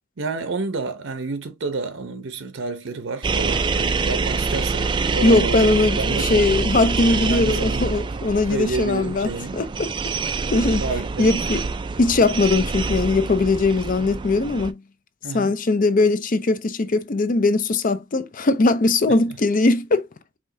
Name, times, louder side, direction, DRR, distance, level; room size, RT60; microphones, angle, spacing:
voice 1, 0.2-6.5 7.3-7.9 8.5-9.6 10.8-11.5 15.2-15.5, right 3 dB, 65° right, 0.7 m, -29 dB
sound 1, 3.2-14.7, right 4 dB, 25° right, 0.3 m, -25 dB
voice 2, 5.2-9.9 10.5-10.8 11.2-11.6 12.0-14.8 15.3-20.1, left 3 dB, 40° left, 0.5 m, -20 dB
5.0 x 3.5 x 2.6 m
head